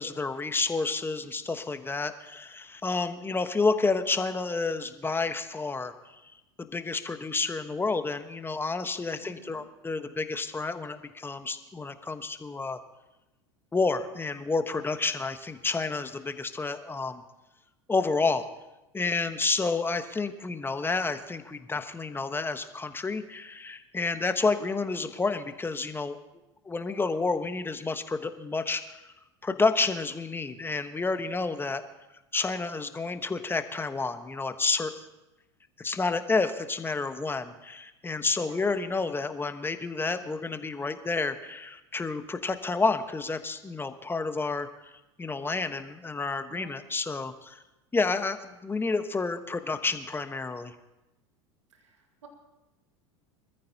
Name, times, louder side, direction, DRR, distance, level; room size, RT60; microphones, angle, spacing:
voice 1, 0.0-5.9 6.6-12.8 13.7-17.2 17.9-18.5 18.9-26.2 26.6-29.0 29.4-31.8 32.3-35.1 35.8-44.7 45.2-47.6 47.9-50.7, left 3 dB, 15° left, 9 dB, 1.1 m, -30 dB
voice 2, 9.2-9.7 38.4-38.7 46.5-46.8 51.7-52.3, right 6 dB, 80° right, 3 dB, 1.7 m, -53 dB
25.0 x 14.0 x 2.8 m, 0.99 s
hypercardioid pair, 85°, 15 cm